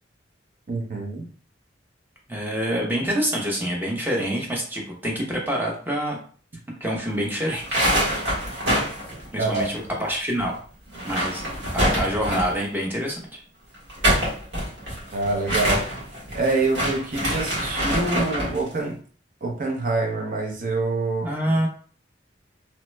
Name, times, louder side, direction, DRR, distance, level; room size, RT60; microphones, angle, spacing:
voice 1, 0.7-1.3 9.4-9.6 15.1-15.8 16.3-19.0 19.4-21.7, right 3 dB, 50° right, 1 dB, 0.7 m, -26 dB
voice 2, 2.3-6.2 6.8-7.8 9.3-10.6 11.0-11.4 11.7-13.2 21.2-21.7, equal, 10° right, -2 dB, 0.7 m, -26 dB
sound 1, 7.5-10.1 10.4-10.5 10.9-12.6 13.7-18.6, equal, 85° right, 1.4 m, -25 dB
3.0 x 2.2 x 3.2 m, 0.43 s
head